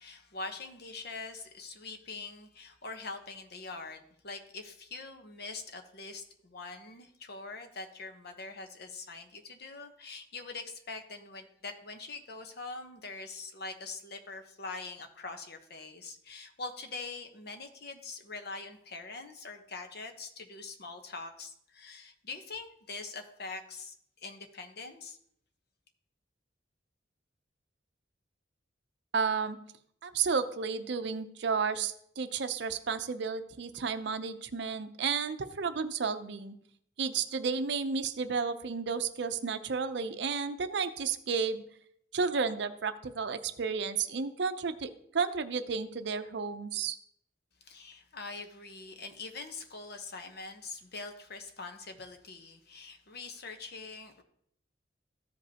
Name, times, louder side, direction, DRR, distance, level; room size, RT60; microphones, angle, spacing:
voice 1, 0.0-25.2 47.6-54.2, left 3 dB, 55° left, 6 dB, 1.0 m, -43 dB
voice 2, 29.1-29.6 30.0-36.6 37.0-41.6 42.1-47.0, right 5 dB, 65° right, 10 dB, 0.6 m, -32 dB
14.0 x 5.2 x 2.8 m, 0.69 s
head